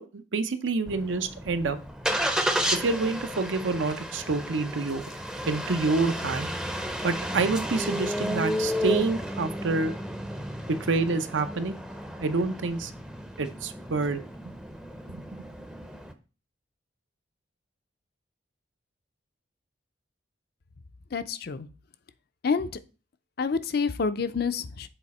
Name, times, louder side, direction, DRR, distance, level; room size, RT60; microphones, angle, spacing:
voice 1, 0.0-1.8 2.8-5.0 5.5-6.5 7.0-9.9 10.7-11.8 12.2-12.9 13.4-14.2 15.1-15.4, right 3 dB, 80° right, 10 dB, 0.7 m, -27 dB
Engine starting, 0.9-16.1, equal, 5° right, 0.5 m, -32 dB
voice 2, 21.1-21.7 22.4-22.7 23.4-24.9, left 5 dB, 55° left, 12 dB, 0.5 m, -28 dB
7.0 x 4.2 x 4.1 m, 0.35 s
head